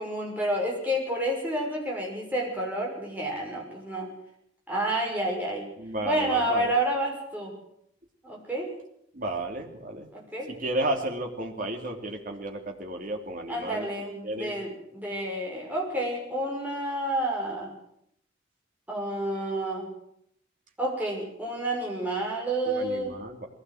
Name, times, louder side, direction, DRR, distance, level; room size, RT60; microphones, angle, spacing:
voice 1, 0.0-4.1 4.7-5.6 6.0-7.5 8.2-8.7 10.1-10.5 13.5-17.7 18.9-19.9 20.8-23.1, right 1 dB, 10° right, -2 dB, 6.5 m, -29 dB
voice 2, 5.8-6.7 9.1-10.1 10.5-13.9 14.2-14.5 22.6-23.5, right 1 dB, 45° right, 1 dB, 3.2 m, -33 dB
21.5 x 16.5 x 8.0 m, 0.74 s
head